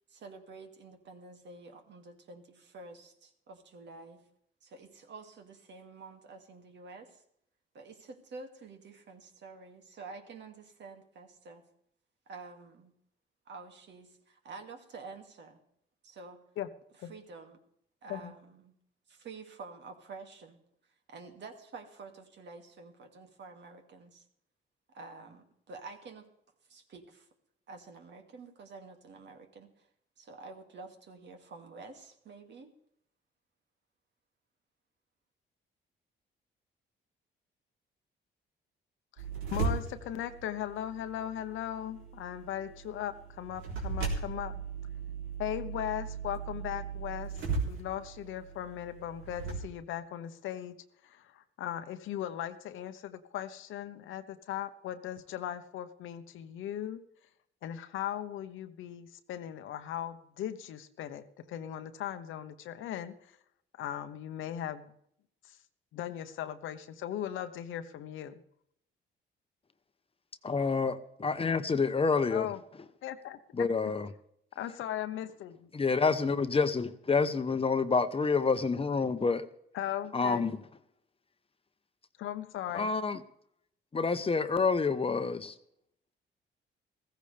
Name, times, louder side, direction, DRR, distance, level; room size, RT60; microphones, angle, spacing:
voice 1, 0.1-4.2 4.6-7.2 7.7-11.6 12.3-12.9 13.5-15.6 16.0-16.4 17.1-17.6 18.0-18.7 19.1-20.6 21.1-24.2 24.9-26.3 26.7-27.3 27.7-29.9 30.2-32.7, right 4 dB, 65° right, 4 dB, 2.4 m, -49 dB
voice 2, 39.2-44.6 45.4-47.3 47.6-50.7 51.0-57.0 57.6-63.4 63.8-64.9 65.4-65.6 65.9-68.4 72.3-72.6 73.0-73.7 74.6-75.7 79.7-80.5 82.2-82.9, left 11 dB, 85° left, 10 dB, 1.0 m, -38 dB
sound 1, 39.2-49.6, right 5 dB, 90° right, 3.5 m, -38 dB
voice 3, 70.4-72.5 73.5-74.1 75.7-79.5 80.1-80.6 82.7-83.2 83.9-85.5, left 4 dB, 30° left, 11 dB, 1.0 m, -28 dB
15.5 x 15.0 x 3.4 m, 0.71 s
cardioid pair, 90°, 20 cm